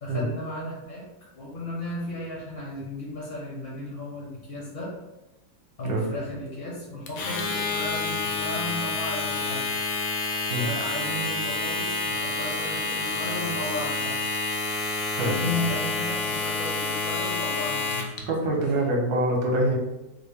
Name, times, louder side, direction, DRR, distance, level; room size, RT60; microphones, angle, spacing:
voice 1, 0.0-1.0 1.3-4.9 5.8-9.7 10.6-14.2 15.1-18.5, left 1 dB, 45° left, -5 dB, 0.8 m, -34 dB
Domestic sounds home sounds, 7.1-18.2, left 3 dB, 70° left, 1.1 m, -28 dB
voice 2, 15.2-15.5 18.3-19.7, right 1 dB, 65° right, -1 dB, 1.2 m, -25 dB
4.1 x 2.1 x 3.5 m, 0.99 s
omnidirectional pair, 1.9 m